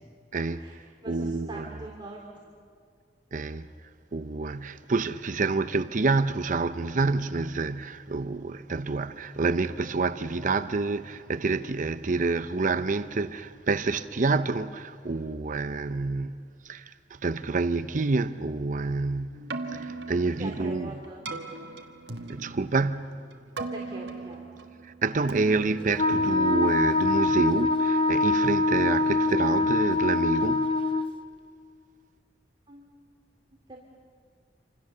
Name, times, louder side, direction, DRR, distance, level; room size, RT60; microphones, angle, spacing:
voice 1, 0.3-1.7 3.3-3.7 4.1-20.9 22.3-23.2 24.8-30.7, right 3 dB, 45° right, 0.6 m, -28 dB
voice 2, 1.0-2.2 20.4-21.2 23.6-24.4 32.7-33.0 33.7-33.8, right 1 dB, 25° right, 2.8 m, -42 dB
Keyboard (musical), 19.3-27.5, right 3 dB, 70° right, 1.6 m, -39 dB
Wind instrument woodwind instrument, 26.0-31.1, left 2 dB, 30° left, 0.8 m, -24 dB
27.0 x 27.0 x 6.8 m
head